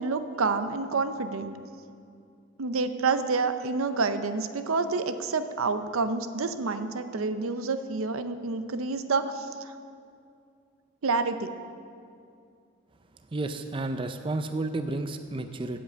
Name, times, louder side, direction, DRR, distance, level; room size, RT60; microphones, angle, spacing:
voice 1, 0.0-1.6 2.6-9.7 11.0-11.5, right 4 dB, 85° right, 10 dB, 0.6 m, -28 dB
voice 2, 13.3-15.8, right 2 dB, 25° right, 8 dB, 0.4 m, -31 dB
8.5 x 8.0 x 8.2 m, 2.4 s
head